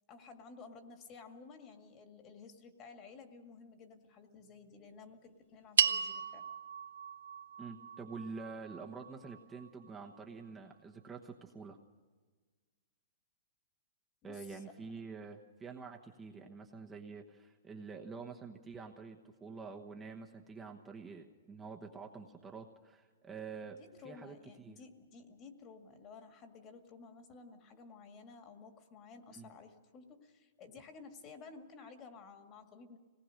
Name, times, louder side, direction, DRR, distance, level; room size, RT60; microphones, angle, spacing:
voice 1, 0.1-6.5 14.2-14.6 23.8-33.0, left 4 dB, 25° left, 6 dB, 2.0 m, -54 dB
sound 1, 5.8-10.2, right 7 dB, 90° right, 1.1 m, -36 dB
voice 2, 7.6-11.8 14.2-23.8 24.0-24.8 29.4-29.5, right 4 dB, 10° right, 1 dB, 1.1 m, -47 dB
25.0 x 19.0 x 6.5 m, 1.4 s
hypercardioid pair, 160°, 0 cm